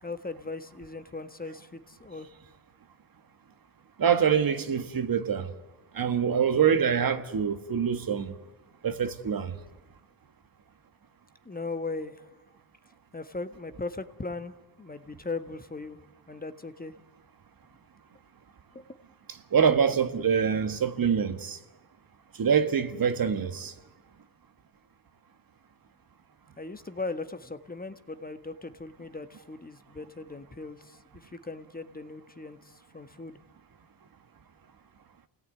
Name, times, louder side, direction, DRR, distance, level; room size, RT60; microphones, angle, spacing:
voice 1, 0.0-2.3 11.4-12.4 13.1-14.5 14.8-16.0 16.3-16.9 18.7-18.8 26.6-33.4, left 3 dB, 20° left, 1.5 m, -38 dB
voice 2, 4.0-5.5 5.9-8.3 8.8-9.5 19.5-21.6 22.4-23.7, right 7 dB, 50° right, 1.7 m, -25 dB
28.5 x 17.5 x 9.5 m
cardioid pair, 85°, 44 cm